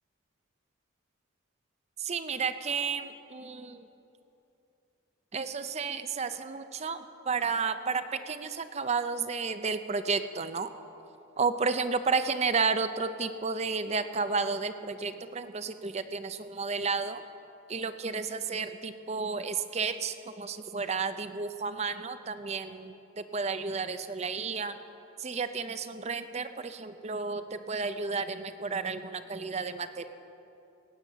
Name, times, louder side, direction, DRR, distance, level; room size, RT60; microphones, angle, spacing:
voice 1, 2.0-3.9 5.3-10.7 11.4-17.2 17.7-24.8 25.2-30.1, right 4 dB, 30° right, 10 dB, 0.5 m, -32 dB
17.5 x 8.9 x 6.7 m, 2.9 s
head